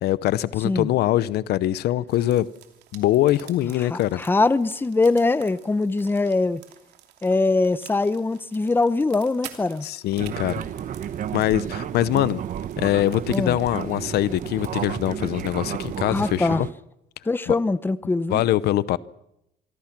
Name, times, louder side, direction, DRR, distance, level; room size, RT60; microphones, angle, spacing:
voice 1, 0.0-2.5 2.9-4.2 9.8-10.6 11.3-12.4 12.8-16.7 17.5-17.6 18.3-19.0, left 14 dB, 70° left, 0.8 m, -23 dB
sound 1, 2.1-16.5, right 12 dB, 85° right, 2.9 m, -49 dB
voice 2, 3.9-6.6 7.2-9.9 13.3-13.5 16.0-16.6 17.3-18.4, left 3 dB, 10° left, 0.8 m, -22 dB
Fixed-wing aircraft airplane, 10.2-16.7, right 10 dB, 50° right, 0.9 m, -32 dB
26.0 x 24.0 x 6.0 m
cardioid pair, 110°, 17 cm